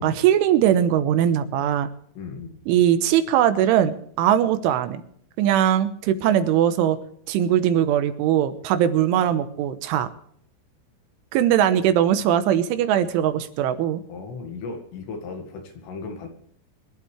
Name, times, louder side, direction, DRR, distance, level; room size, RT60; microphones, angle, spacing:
voice 1, 0.0-1.9 2.7-5.0 5.4-7.0 7.3-10.1 11.3-14.0, right 10 dB, 85° right, 10 dB, 3.4 m, -20 dB
voice 2, 2.2-2.6 14.1-16.3, left 4 dB, 65° left, 4 dB, 4.0 m, -36 dB
24.5 x 12.0 x 3.3 m, 0.65 s
omnidirectional pair, 5.5 m